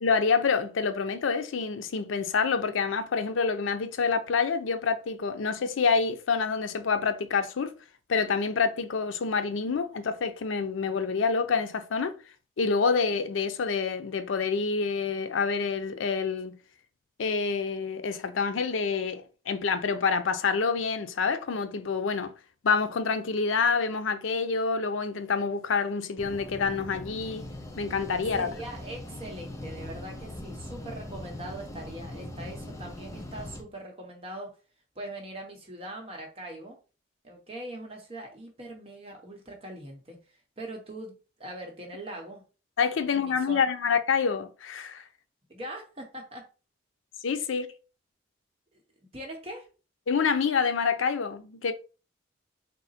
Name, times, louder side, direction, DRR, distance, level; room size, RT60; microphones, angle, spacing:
voice 1, 0.0-7.8 8.1-12.1 12.6-16.6 17.2-22.3 22.6-27.5 27.8-28.5 42.8-45.0 47.2-47.7 50.1-51.7, left 5 dB, 85° left, 0.5 m, -27 dB
sound 1, 26.2-33.6, left 1 dB, 15° left, 0.4 m, -41 dB
voice 2, 28.3-34.5 34.9-36.8 37.2-40.2 40.6-42.4 43.0-43.6 45.5-46.4 49.1-49.7, right 1 dB, 30° right, 0.9 m, -41 dB
3.9 x 2.1 x 4.0 m
head